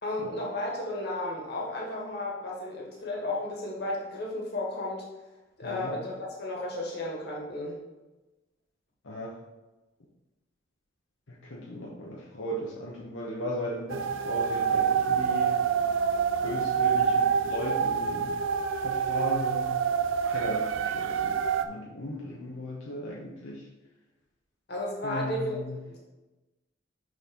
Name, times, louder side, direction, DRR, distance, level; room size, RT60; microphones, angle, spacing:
voice 1, 0.0-5.1 5.6-7.8 24.7-26.0, left 1 dB, 55° left, -3 dB, 1.9 m, -33 dB
voice 2, 5.6-5.9 9.0-9.3 11.3-15.6 16.4-18.3 18.8-19.8 20.3-23.6 25.0-25.8, left 1 dB, 85° left, -3 dB, 1.1 m, -37 dB
sound 1, 13.9-21.6, right 7 dB, 75° right, 0.4 m, -27 dB
6.5 x 6.1 x 3.8 m, 1.1 s
head